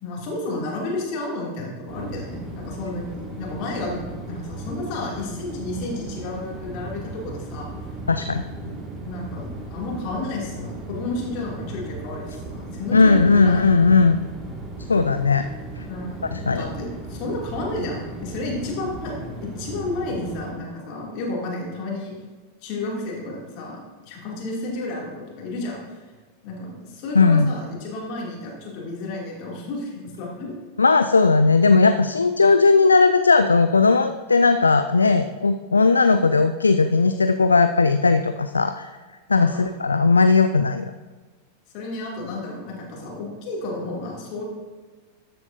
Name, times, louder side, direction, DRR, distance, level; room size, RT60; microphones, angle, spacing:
voice 1, 0.0-7.7 8.6-8.7 9.0-13.6 15.9-22.2 22.6-25.1 25.4-26.0 26.4-30.6 39.4-39.8 41.7-44.4, left 2 dB, 45° left, -2 dB, 2.5 m, -32 dB
sound 1, 1.9-20.5, right 2 dB, 20° right, 2.0 m, -36 dB
voice 2, 8.1-8.4 12.9-14.2 14.9-15.5 15.8-15.9 16.3-16.7 27.1-27.5 30.8-38.9 39.3-40.8, left 4 dB, 75° left, 10 dB, 0.3 m, -17 dB
13.0 x 7.7 x 2.6 m, 1.4 s
figure-of-eight pair, 90°, 0 cm